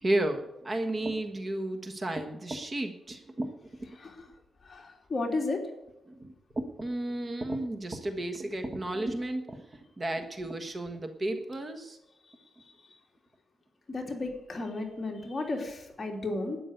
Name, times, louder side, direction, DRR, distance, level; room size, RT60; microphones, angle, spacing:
voice 1, 0.0-3.5 6.1-12.0, right 1 dB, 25° right, 6 dB, 1.4 m, -33 dB
voice 2, 3.9-4.3 4.6-5.6 13.9-16.6, left 2 dB, 30° left, 1 dB, 3.0 m, -33 dB
12.5 x 9.8 x 6.6 m, 0.92 s
wide cardioid pair, 130°, 0 cm